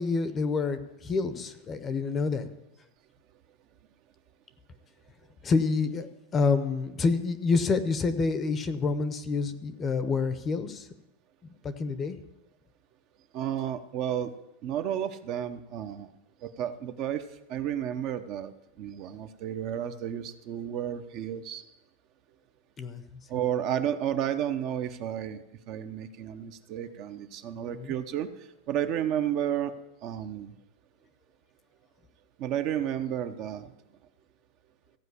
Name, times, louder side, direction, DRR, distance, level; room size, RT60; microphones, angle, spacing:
voice 1, 0.0-2.5 5.4-6.1 6.3-10.9 11.6-12.2 22.8-23.2 27.7-27.9, left 4 dB, 20° left, 12 dB, 0.7 m, -28 dB
voice 2, 13.3-14.3 14.6-16.1 16.4-17.2 17.5-21.6 23.3-28.3 28.7-29.7 30.0-30.5 32.4-33.7, right 10 dB, 40° right, 9 dB, 0.7 m, -32 dB
15.0 x 5.0 x 8.2 m, 0.91 s
supercardioid pair, 150°, 0 cm